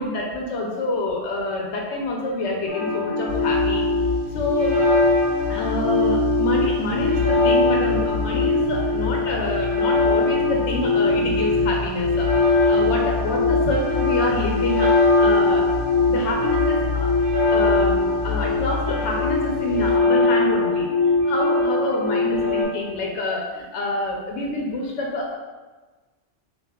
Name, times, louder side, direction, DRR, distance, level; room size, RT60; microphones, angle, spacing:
voice 1, 0.0-3.8 4.3-4.8 5.5-14.9 15.2-15.8 16.1-17.1 17.5-20.9 21.2-25.3, left 2 dB, 75° left, -1 dB, 0.9 m, -27 dB
sound 1, 2.7-22.6, left 3 dB, 20° right, 1.3 m, -21 dB
sound 2, 3.3-20.0, left 7 dB, 80° right, 0.9 m, -30 dB
6.8 x 2.5 x 2.2 m, 1.3 s
omnidirectional pair, 1.2 m